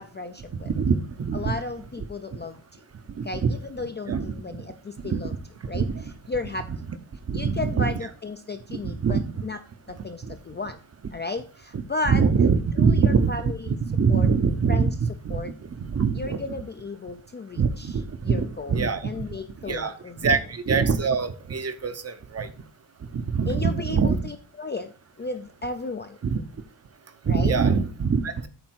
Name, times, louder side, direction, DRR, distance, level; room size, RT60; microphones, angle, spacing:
voice 1, 0.0-0.7 1.3-2.6 3.2-5.3 5.7-5.9 6.3-6.7 7.3-9.6 9.9-10.8 11.1-12.2 12.8-13.8 14.1-14.3 14.7-14.9 15.3-15.5 16.1-20.4 23.5-26.2 27.3-27.6, left 3 dB, 25° left, 7 dB, 0.3 m, -34 dB
voice 2, 0.7-1.6 3.2-3.5 4.1-4.3 5.0-5.2 5.7-6.0 7.3-7.9 8.7-9.3 10.3-10.4 12.1-13.3 13.7-15.4 15.8-16.4 17.6-19.0 19.7-19.9 20.2-22.5 23.1-24.3 26.2-26.4 27.3-28.5, right 5 dB, 30° right, 11 dB, 0.6 m, -23 dB
8.8 x 3.4 x 6.1 m, 0.39 s
wide cardioid pair, 155°, 49 cm